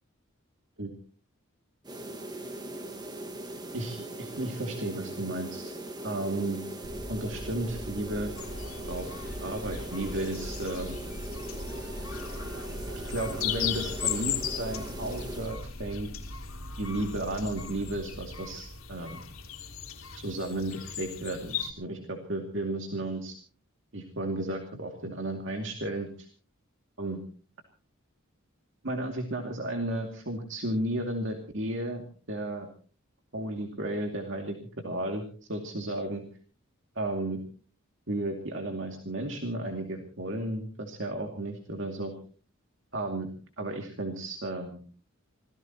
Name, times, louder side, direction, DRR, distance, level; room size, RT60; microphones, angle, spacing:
sound 1, 1.8-15.6, right 1 dB, 20° right, 1.8 m, -40 dB
voice 1, 3.7-5.7 6.0-6.6 7.1-8.4 8.8-9.1 9.4-11.0 12.9-16.1 16.8-19.2 20.2-23.3 23.9-26.3 27.0-27.2 28.8-32.0 32.3-32.7 33.3-34.6 34.8-35.2 35.5-36.2 37.0-37.4 38.1-42.1 42.9-43.3 43.6-44.8, right 1 dB, 60° right, 3 dB, 2.4 m, -33 dB
sound 2, 6.8-19.8, equal, 55° left, 2.6 m, -42 dB
sound 3, 8.3-21.7, left 9 dB, 85° left, 2.9 m, -38 dB
26.0 x 18.0 x 3.0 m, 0.40 s
head